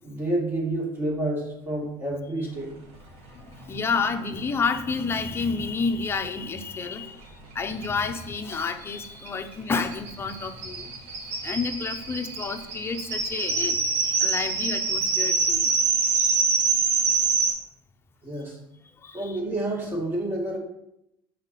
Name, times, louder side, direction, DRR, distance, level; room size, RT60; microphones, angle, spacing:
voice 1, 0.0-2.7 18.2-18.6 19.1-20.6, right 1 dB, 20° right, -2 dB, 2.1 m, -29 dB
voice 2, 3.3-10.9 11.4-15.8 16.1-16.4 19.0-19.4, left 5 dB, 20° left, 6 dB, 0.7 m, -30 dB
sound 1, 7.8-7.9 8.2-8.3 8.5-17.5, right 4 dB, 70° right, 1.4 m, -25 dB
7.2 x 4.5 x 4.1 m, 0.83 s
cardioid pair, 120°, 11 cm